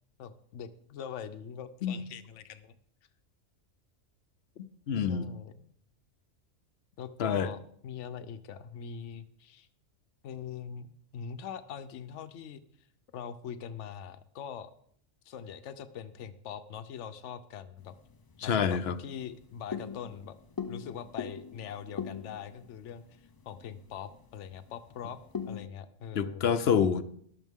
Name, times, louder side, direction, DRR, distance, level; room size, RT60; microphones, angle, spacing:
voice 1, 0.2-2.7 5.0-5.5 7.0-9.7 10.2-10.9 11.1-12.6 13.1-14.7 15.3-17.9 18.4-20.4 20.7-25.2 25.5-26.5, left 8 dB, 80° left, 10 dB, 1.0 m, -42 dB
voice 2, 4.9-5.3 7.2-7.5 18.4-19.0 26.1-27.0, left 7 dB, 60° left, 13 dB, 0.9 m, -27 dB
sound 1, 17.8-25.7, left 6 dB, 35° left, 0.3 m, -43 dB
14.0 x 11.5 x 3.6 m, 0.65 s
omnidirectional pair, 1.2 m